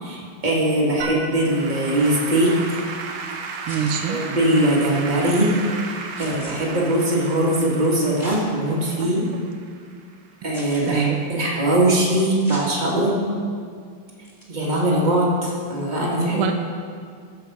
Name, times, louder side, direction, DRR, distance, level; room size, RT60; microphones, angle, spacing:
voice 1, 0.0-2.8 4.1-5.5 6.2-9.2 10.4-13.2 14.5-16.5, right 1 dB, 20° right, -4 dB, 1.9 m, -21 dB
Applause / Keyboard (musical), 1.0-10.3, right 4 dB, 60° right, 1.3 m, -34 dB
sound 1, 3.6-4.0 6.2-6.5 8.2-8.4 9.0-9.1 10.5-10.9 12.4-12.7 14.2-14.4, equal, 10° left, 2.5 m, -38 dB
voice 2, 3.7-4.2 9.0-9.1 10.9-11.2 16.3-16.5, right 8 dB, 85° right, 6 dB, 1.5 m, -24 dB
14.0 x 5.4 x 6.0 m, 2.2 s
omnidirectional pair, 2.4 m